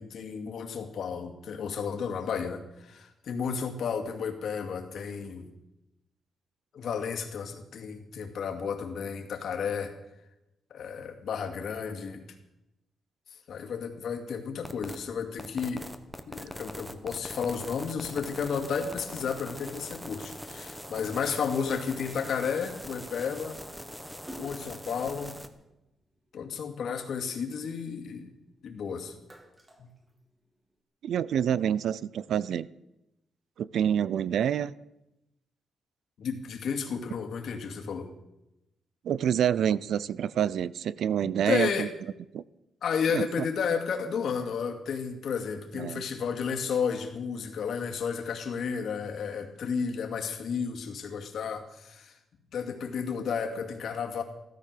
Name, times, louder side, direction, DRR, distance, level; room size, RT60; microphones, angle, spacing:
voice 1, 0.0-5.5 6.7-9.9 10.7-12.2 13.5-15.9 16.3-23.6 24.4-25.3 26.3-28.3 28.6-29.1 29.8-29.9 36.2-38.1 41.2-41.9 42.8-52.1 52.5-54.2, left 6 dB, 65° left, 4 dB, 2.3 m, -32 dB
sound 1, 14.6-15.0 15.4-25.5, equal, ahead, 1.2 m, -42 dB
Splash splatter, 24.2-26.7 27.2-28.6 29.0-30.7, right 1 dB, 15° right, 2.0 m, -50 dB
voice 2, 31.0-32.7 33.6-34.7 39.0-41.9 42.3-42.4 43.1-43.3 45.7-46.0, right 9 dB, 75° right, 20 dB, 0.5 m, -27 dB
15.5 x 13.5 x 6.7 m, 0.90 s
wide cardioid pair, 155°, 0 cm